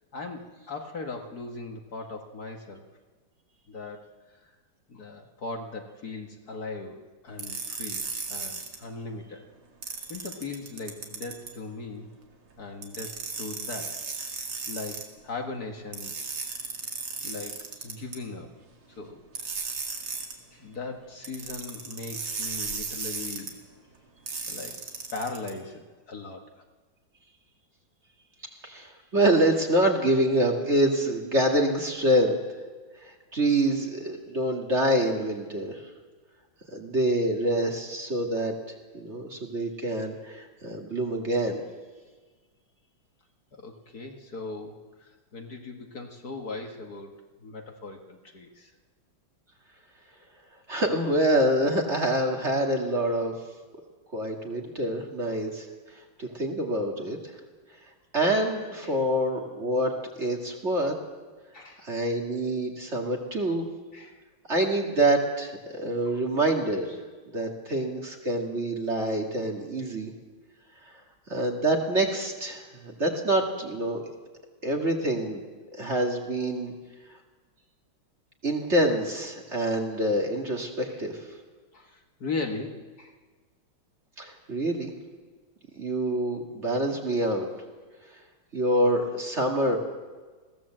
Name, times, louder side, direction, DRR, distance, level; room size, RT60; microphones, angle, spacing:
voice 1, 0.1-2.8 3.7-4.4 4.9-9.5 10.1-12.1 12.6-14.0 14.7-16.1 17.2-18.5 19.0-19.2 20.5-23.6 24.5-24.8 25.1-26.6 43.5-48.7 56.2-56.3 58.8-59.0 61.5-61.9 63.9-64.2 66.0-66.2 67.7-67.8 80.9-81.0 81.7-83.2, left 3 dB, 50° left, 3 dB, 1.8 m, -39 dB
sound 1, 7.4-8.8 9.8-11.5 12.8-15.0 15.9-18.2 19.3-20.4 21.2-23.5 24.3-25.5, right 5 dB, 80° right, 3.0 m, -35 dB
voice 2, 28.6-32.4 33.0-35.8 36.7-38.5 38.9-41.6 50.7-53.3 54.1-55.6 56.2-57.2 58.1-60.9 61.8-63.7 64.5-66.9 67.3-70.1 71.3-74.0 74.6-75.4 75.7-76.7 78.4-81.2 84.2-84.9 85.8-87.5 88.5-89.8, right 1 dB, 35° right, 1 dB, 2.2 m, -26 dB
21.0 x 16.0 x 7.6 m, 1.4 s
omnidirectional pair, 2.3 m